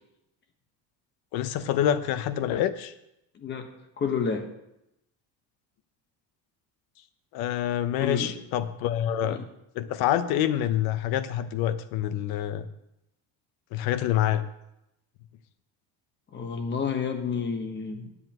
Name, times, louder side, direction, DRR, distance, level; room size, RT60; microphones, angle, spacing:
voice 1, 1.3-2.9 7.3-9.4 9.8-12.7 13.7-14.4, left 11 dB, 70° left, 13 dB, 0.8 m, -26 dB
voice 2, 3.3-3.7 4.0-4.4 8.0-8.3 9.2-9.4 16.3-18.0, left 6 dB, 30° left, 5 dB, 1.1 m, -30 dB
15.5 x 9.8 x 3.0 m, 0.85 s
cardioid pair, 160°, 39 cm